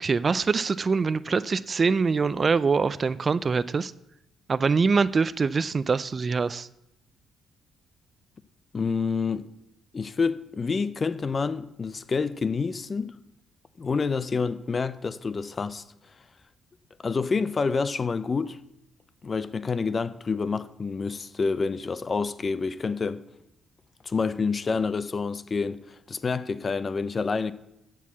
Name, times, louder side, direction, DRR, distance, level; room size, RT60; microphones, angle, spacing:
voice 1, 0.0-3.9 4.5-6.7, right 4 dB, 35° right, 0.4 m, -24 dB
voice 2, 8.7-9.4 9.9-13.2 13.8-15.8 17.0-18.6 19.2-23.2 24.0-25.8 26.1-27.5, left 4 dB, 35° left, 0.5 m, -28 dB
13.0 x 4.7 x 8.3 m
cardioid pair, 90°, 0 cm